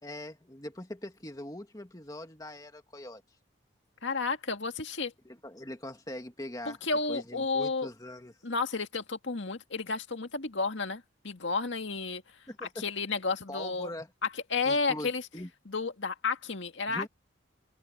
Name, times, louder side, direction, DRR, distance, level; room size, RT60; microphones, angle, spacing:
voice 1, 0.0-3.2 5.3-6.8 7.1-8.3 12.5-12.8 13.5-14.1 14.7-15.5 16.9-17.1, left 1 dB, 20° left, 2.0 m, -42 dB
voice 2, 4.0-5.1 6.7-7.9 8.4-12.2 12.8-13.9 14.5-15.2 15.7-17.1, left 4 dB, 70° left, 1.9 m, -32 dB
head